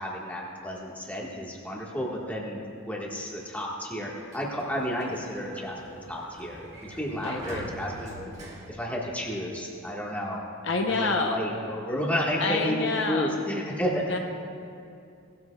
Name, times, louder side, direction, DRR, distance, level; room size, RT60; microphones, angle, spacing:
voice 1, 0.0-8.3 8.7-10.4 10.9-14.2, equal, 10° left, -3 dB, 1.6 m, -32 dB
Sliding door, 4.0-9.7, right 1 dB, 30° right, 1.8 m, -44 dB
voice 2, 7.2-7.6 10.6-11.4 12.4-13.4 14.1-14.2, left 3 dB, 60° left, 2 dB, 0.9 m, -27 dB
19.0 x 13.0 x 2.4 m, 2.5 s
head